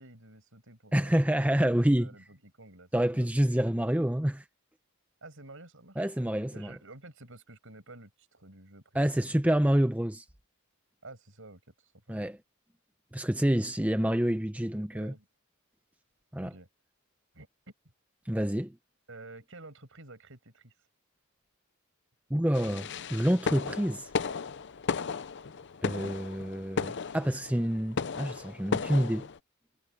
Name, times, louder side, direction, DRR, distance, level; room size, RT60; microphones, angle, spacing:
voice 1, 0.0-3.3 5.2-6.0 6.5-8.8 9.1-9.4 11.0-12.2 14.9-15.3 16.4-16.7 17.3-17.5 19.1-20.7, right 2 dB, 65° right, 7.5 m, -51 dB
voice 2, 0.9-2.1 2.9-4.4 6.0-6.7 8.9-10.2 12.1-12.4 13.1-15.1 16.3-16.5 18.3-18.8 22.3-24.1 25.8-29.3, right 1 dB, 5° right, 0.7 m, -27 dB
sound 1, 22.5-29.4, left 5 dB, 55° left, 0.6 m, -35 dB
head